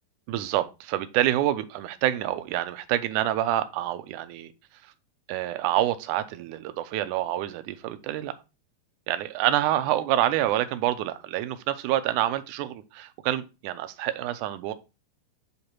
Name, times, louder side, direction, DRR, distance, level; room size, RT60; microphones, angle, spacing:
voice 1, 0.3-4.5 5.3-8.3 9.1-14.7, right 13 dB, 85° right, 2.1 m, -27 dB
8.0 x 3.1 x 4.4 m
omnidirectional pair, 3.6 m